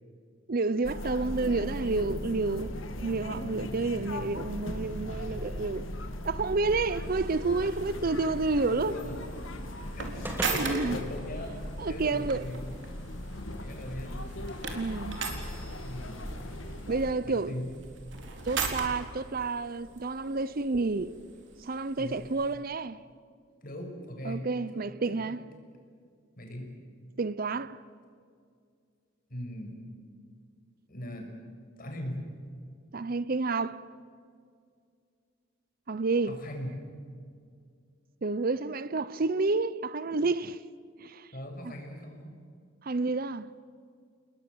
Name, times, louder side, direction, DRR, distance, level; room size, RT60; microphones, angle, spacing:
voice 1, 0.5-2.7 3.0-5.9 6.2-9.0 10.5-11.0 11.8-12.4 14.7-15.2 16.9-17.5 18.5-21.1 21.6-23.0 24.2-25.4 27.2-27.8 32.9-33.8 35.9-36.3 38.2-40.6 41.0-41.3 41.6-41.7 42.8-43.5, right 3 dB, 45° right, 0.7 m, -30 dB
sound 1, 0.8-17.1, left 1 dB, 85° left, 2.4 m, -38 dB
sound 2, 7.0-22.5, right 4 dB, 65° right, 3.9 m, -40 dB
sound 3, 7.7-12.1, right 1 dB, 10° right, 2.7 m, -44 dB
voice 2, 8.7-9.1 9.9-11.5 11.9-12.7 13.6-14.1 15.8-16.6 17.2-17.7 22.0-22.2 23.6-24.5 24.7-24.8 25.1-25.2 26.4-26.7 29.3-29.8 30.9-31.3 31.8-32.2 36.2-36.7 41.3-42.3, equal, 45° left, 6.1 m, -39 dB
29.5 x 20.5 x 7.9 m
head